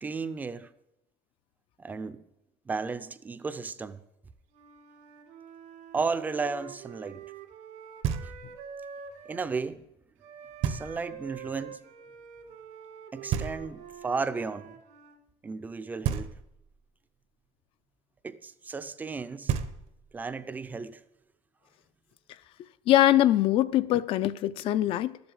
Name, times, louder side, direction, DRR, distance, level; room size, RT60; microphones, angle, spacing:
voice 1, 0.0-0.7 1.8-2.2 2.7-4.0 5.9-7.2 8.2-8.3 9.3-9.8 10.6-11.8 13.1-14.7 15.4-16.3 18.2-19.5 20.1-21.0, right 4 dB, 15° right, 0.5 m, -34 dB
Wind instrument woodwind instrument, 4.5-9.5 10.2-15.2, right 8 dB, 75° right, 2.2 m, -46 dB
Knock, 8.0-8.7 10.6-11.3 13.3-14.1 16.0-16.8 19.1-19.2 19.5-20.3, right 8 dB, 60° right, 1.0 m, -32 dB
voice 2, 22.9-25.2, left 13 dB, 50° left, 0.5 m, -23 dB
13.0 x 7.8 x 8.1 m
cardioid pair, 175°, 12 cm